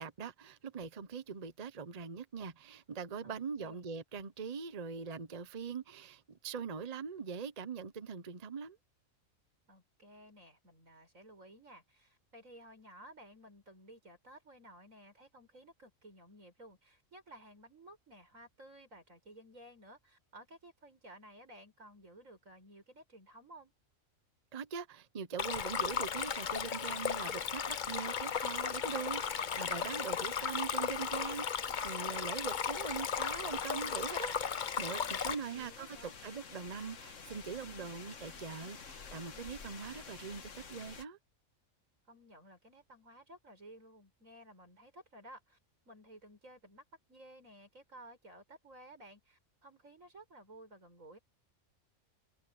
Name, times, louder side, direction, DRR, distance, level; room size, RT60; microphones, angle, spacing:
voice 1, 0.0-8.8 24.5-41.2, right 6 dB, 35° right, 0.9 m, -42 dB
voice 2, 3.2-3.9 9.7-23.7 35.0-36.1 42.1-45.6 45.8-51.2, right 1 dB, 90° right, 8.3 m, -56 dB
Stream, 25.4-35.3, left 7 dB, 45° left, 0.8 m, -36 dB
sound 1, 25.7-41.1, left 5 dB, 70° left, 1.8 m, -51 dB
omnidirectional pair, 1.3 m